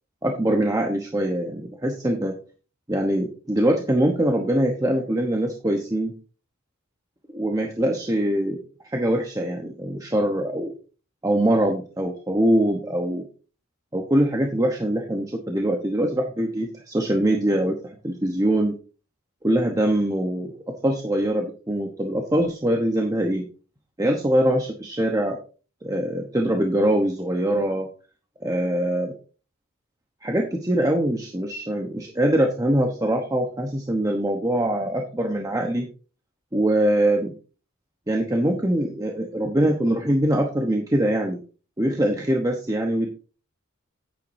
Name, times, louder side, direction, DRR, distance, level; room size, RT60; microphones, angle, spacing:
voice 1, 0.2-2.4 2.9-6.1 7.3-8.6 8.9-10.7 11.2-13.3 13.9-18.8 19.4-20.5 20.8-23.4 24.0-25.4 25.8-27.9 28.4-29.1 30.2-35.9 36.5-37.3 38.1-41.4 41.8-43.1, right 1 dB, 15° right, 1 dB, 1.0 m, -23 dB
10.0 x 8.5 x 2.7 m, 0.37 s
head